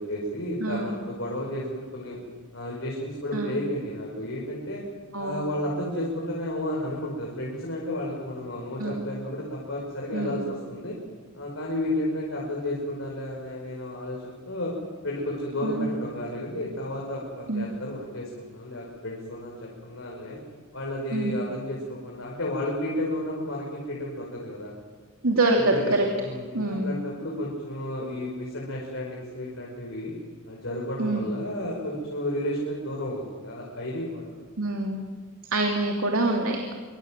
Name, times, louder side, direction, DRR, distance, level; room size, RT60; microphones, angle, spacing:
voice 1, 0.0-2.2 2.5-4.8 5.2-11.0 11.3-14.7 15.0-20.4 20.7-24.7 25.7-30.1 30.5-34.3, left 1 dB, 70° left, -3 dB, 5.6 m, -32 dB
voice 2, 0.6-1.0 3.3-3.6 5.1-5.4 8.8-9.1 10.1-10.4 15.6-15.9 17.5-17.7 21.1-21.3 25.2-26.1 26.5-26.9 31.0-31.3 34.6-35.0 35.5-36.7, right 2 dB, 80° right, 1 dB, 2.8 m, -25 dB
25.5 x 25.0 x 7.6 m, 1.5 s
head